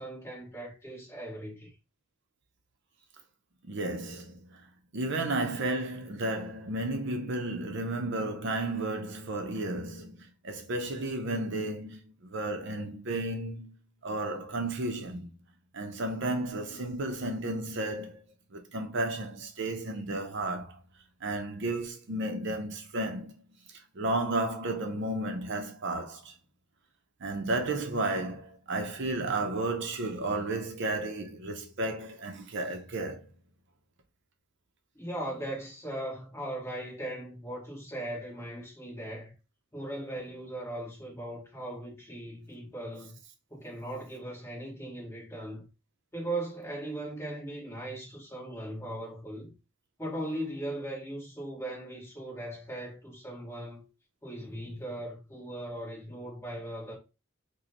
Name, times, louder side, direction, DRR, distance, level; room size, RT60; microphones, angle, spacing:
voice 1, 0.0-1.7 34.9-39.3 39.7-43.2 43.5-45.7 46.1-49.5 50.0-53.8 54.2-56.9, right 1 dB, 15° left, 1.4 m, -38 dB
voice 2, 3.6-15.3 15.7-18.2 18.5-20.8 21.2-23.4 23.7-26.3 27.2-33.3, right 2 dB, 55° right, 0.6 m, -33 dB
5.0 x 2.2 x 2.9 m
head